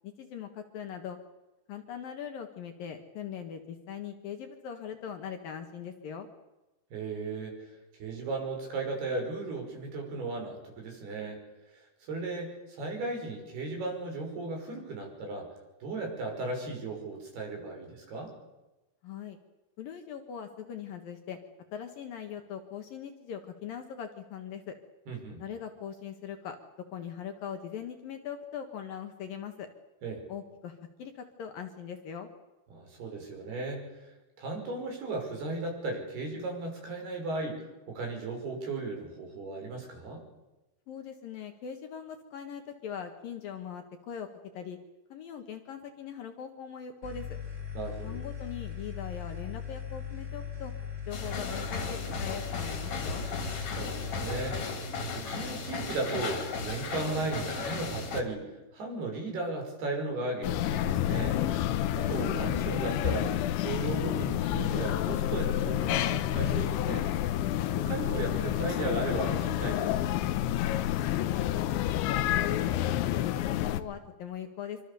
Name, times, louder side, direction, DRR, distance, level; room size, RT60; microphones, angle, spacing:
voice 1, 0.0-1.2 1.7-6.3 19.0-19.4 19.8-21.4 21.7-24.8 25.4-26.6 26.9-29.7 30.3-32.3 40.9-44.3 44.5-44.8 45.1-47.4 48.0-50.7 51.1-53.3 70.9-74.8, left 8 dB, 60° left, 5 dB, 2.9 m, -41 dB
voice 2, 6.9-7.7 8.0-11.4 11.7-15.5 15.8-18.3 25.1-25.4 30.0-30.2 32.7-34.1 34.4-40.2 47.7-48.2 53.8-54.8 55.1-61.3 62.0-67.1 67.8-70.0, right 3 dB, 60° right, 2 dB, 7.8 m, -36 dB
sound 1, 47.0-54.6, left 8 dB, 25° right, 5.8 m, -39 dB
sound 2, 51.1-58.2, left 4 dB, 45° left, 3.7 m, -35 dB
sound 3, 60.4-73.8, left 12 dB, 85° left, 3.4 m, -29 dB
26.5 x 24.5 x 7.0 m, 1.0 s
omnidirectional pair, 5.2 m